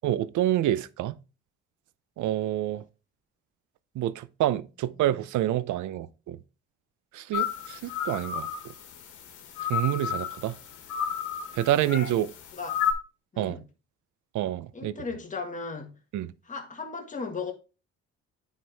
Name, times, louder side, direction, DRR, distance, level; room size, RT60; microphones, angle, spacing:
voice 1, 0.0-1.1 2.2-2.8 4.0-6.4 7.1-8.5 9.7-10.5 11.5-12.3 13.4-13.6 14.3-14.9 16.1-16.3, right 13 dB, 75° right, 0.6 m, -27 dB
sound 1, 7.3-12.9, left 8 dB, 80° left, 1.5 m, -32 dB
voice 2, 13.3-13.7 14.7-16.0 16.4-17.5, left 4 dB, 25° left, 1.8 m, -36 dB
9.3 x 4.6 x 3.4 m
cardioid pair, 90°, 30 cm